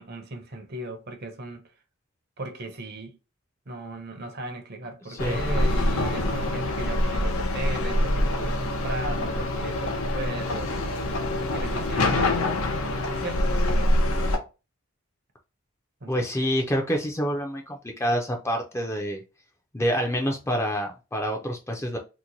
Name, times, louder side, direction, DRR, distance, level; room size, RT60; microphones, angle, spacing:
voice 1, 0.0-1.7 2.4-3.2 3.7-11.1 11.5-12.4 13.1-14.0 16.0-16.5, right 2 dB, 45° right, 0.7 m, -37 dB
sound 1, 5.2-14.4, left 1 dB, 75° left, 0.7 m, -25 dB
voice 2, 16.1-19.2 19.7-22.0, equal, 10° left, 0.5 m, -27 dB
2.9 x 2.2 x 3.8 m
head